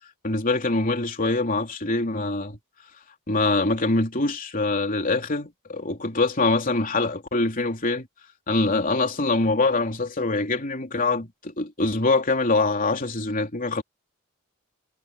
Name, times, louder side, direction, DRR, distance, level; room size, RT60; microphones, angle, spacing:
voice 1, 0.2-2.6 3.3-8.1 8.5-13.8, left 3 dB, 40° left, 3.4 m, -24 dB
head